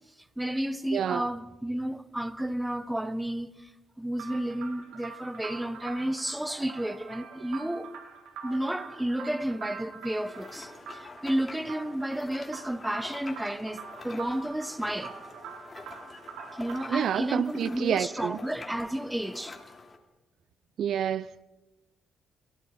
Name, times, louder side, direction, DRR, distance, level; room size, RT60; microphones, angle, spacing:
voice 1, 0.4-3.7 4.0-7.9 8.4-15.1 16.5-19.6, right 1 dB, 5° right, 1.4 m, -32 dB
voice 2, 0.9-1.3 16.9-18.4 20.8-21.3, right 9 dB, 65° right, 0.6 m, -28 dB
sound 1, 4.1-17.1, right 6 dB, 85° right, 4.7 m, -45 dB
sound 2, 10.1-20.0, left 3 dB, 30° left, 3.5 m, -46 dB
29.5 x 17.5 x 5.4 m
cardioid pair, 90°, 0 cm